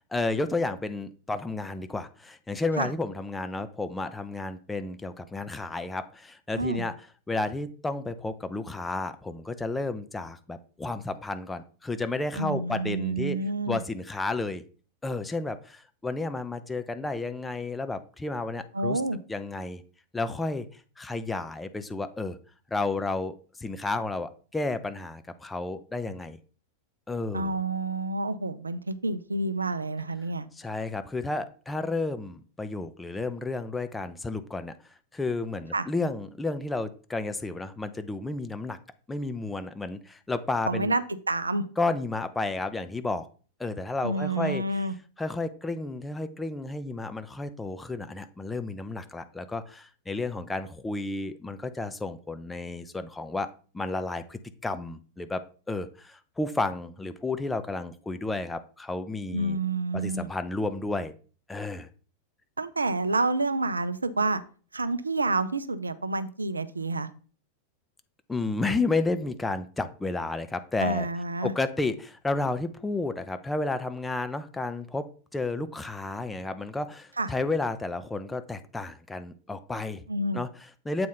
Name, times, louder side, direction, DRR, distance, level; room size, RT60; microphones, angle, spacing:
voice 1, 0.1-6.9 7.3-13.4 13.7-14.6 15.0-19.0 19.3-19.8 20.1-22.4 22.7-26.4 27.1-27.6 30.6-34.7 35.1-38.8 39.1-40.9 41.8-43.3 43.6-44.8 45.2-53.5 53.7-59.6 59.9-61.1 61.5-61.9 68.3-71.1 71.4-75.1 75.3-80.0 80.3-81.1, left 3 dB, 10° left, 10 dB, 0.5 m, -32 dB
voice 2, 12.4-13.8 18.7-19.2 27.3-30.5 35.7-35.9 40.7-41.7 44.0-44.9 59.3-60.3 62.6-64.4 64.7-67.1 70.8-71.5 77.2-77.3 80.1-80.4, right 2 dB, 80° right, 13 dB, 0.4 m, -28 dB
7.6 x 4.1 x 3.8 m, 0.39 s
figure-of-eight pair, 90°, 0 cm